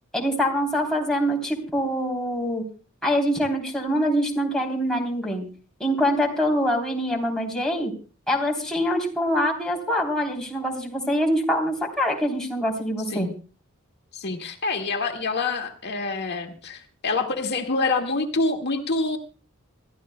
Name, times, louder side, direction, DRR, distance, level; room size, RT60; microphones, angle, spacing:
voice 1, 0.1-2.6 3.0-5.4 5.8-7.9 8.3-13.3, equal, 5° left, -2 dB, 3.3 m, -24 dB
voice 2, 14.1-19.2, left 3 dB, 55° left, 3 dB, 1.8 m, -26 dB
27.0 x 14.0 x 2.2 m, 0.35 s
head